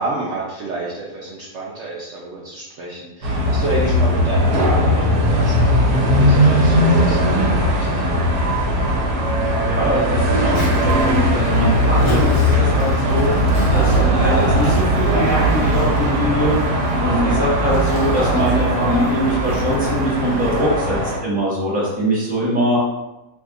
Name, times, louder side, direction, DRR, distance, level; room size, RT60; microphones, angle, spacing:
voice 1, 0.0-8.0, right 2 dB, 65° right, -5 dB, 0.8 m, -29 dB
sound 1, 3.2-21.2, equal, 80° right, 1.2 m, -18 dB
voice 2, 9.6-13.3 13.7-16.5 17.0-22.8, equal, 5° right, -7 dB, 0.9 m, -22 dB
Zipper (clothing), 10.5-20.6, equal, 50° left, 0.7 m, -29 dB
2.7 x 2.3 x 3.6 m, 0.98 s
omnidirectional pair, 1.7 m